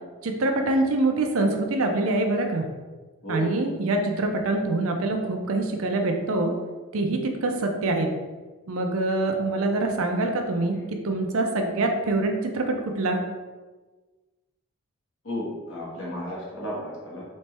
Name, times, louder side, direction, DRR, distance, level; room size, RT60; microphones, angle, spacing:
voice 1, 0.2-2.7 3.3-6.5 6.9-8.1 8.7-10.8 11.0-13.2, right 2 dB, 70° right, 4 dB, 0.6 m, -25 dB
voice 2, 15.2-17.2, equal, 60° left, -5 dB, 1.4 m, -33 dB
4.2 x 3.2 x 3.4 m, 1.3 s
head